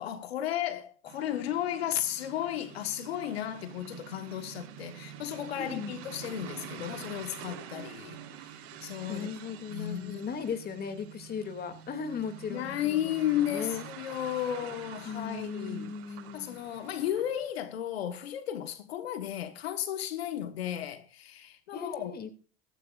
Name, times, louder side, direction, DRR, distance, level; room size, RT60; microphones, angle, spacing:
voice 1, 0.0-9.3 9.7-10.3 12.5-22.1, left 11 dB, 85° left, 1.4 m, -34 dB
sound 1, 1.1-17.5, right 8 dB, 55° right, 6.1 m, -47 dB
voice 2, 5.5-5.9 9.1-13.9 15.0-16.6 21.7-22.3, left 6 dB, 30° left, 2.4 m, -37 dB
14.5 x 14.5 x 2.5 m
hypercardioid pair, 105°, 30 cm